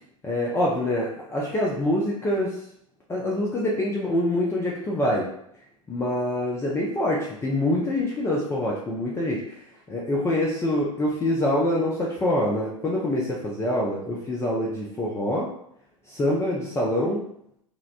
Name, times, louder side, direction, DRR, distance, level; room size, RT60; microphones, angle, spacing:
voice 1, 0.2-2.6 3.1-5.2 5.9-9.4 9.9-15.5 16.1-17.2, left 1 dB, 15° left, -4 dB, 0.4 m, -25 dB
2.8 x 2.0 x 2.5 m, 0.71 s
hypercardioid pair, 90°, 18 cm